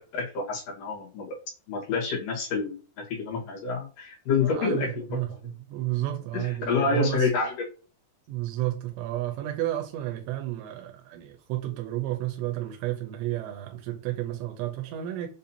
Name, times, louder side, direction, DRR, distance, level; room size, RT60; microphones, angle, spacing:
voice 1, 0.1-1.3 1.7-2.7 3.1-5.0 6.3-7.7, left 4 dB, 60° left, 2.7 m, -28 dB
voice 2, 4.4-7.3 8.3-15.3, right 14 dB, 85° right, 2.9 m, -32 dB
7.0 x 2.6 x 2.8 m
omnidirectional pair, 5.0 m